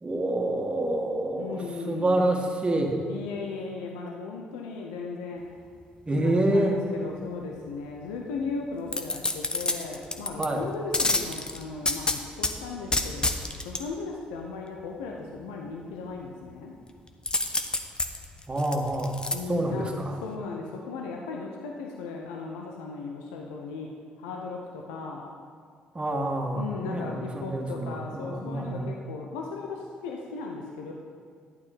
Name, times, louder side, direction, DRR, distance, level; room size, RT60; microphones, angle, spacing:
voice 1, 0.0-3.1 6.1-6.8 10.4-10.7 18.5-19.2 19.5-20.2 25.9-28.9, right 1 dB, 25° right, 1 dB, 1.8 m, -27 dB
voice 2, 1.4-2.2 3.1-5.5 6.1-13.4 13.6-16.8 19.3-23.9 24.2-25.3 26.5-30.9, left 4 dB, 80° left, 1 dB, 0.9 m, -36 dB
sound 1, 8.9-10.5 10.9-12.5 12.9-13.8 17.3-19.3 19.8-19.9, left 2 dB, 20° left, 1.0 m, -27 dB
11.5 x 8.7 x 4.3 m, 2.1 s
hypercardioid pair, 50°, 4 cm